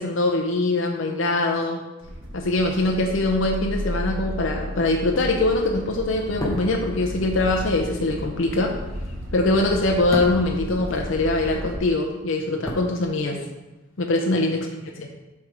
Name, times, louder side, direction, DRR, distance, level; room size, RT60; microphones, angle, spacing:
voice 1, 0.0-1.8 2.3-8.7 9.3-13.4 14.0-14.7 15.0-15.1, left 2 dB, 70° left, 1 dB, 0.6 m, -23 dB
sound 1, 2.0-11.8, equal, 65° right, 0.9 m, -33 dB
sound 2, 6.2-11.5 11.8-13.6 13.9-14.1, equal, 15° left, 0.8 m, -35 dB
7.8 x 3.4 x 5.0 m, 1.1 s
head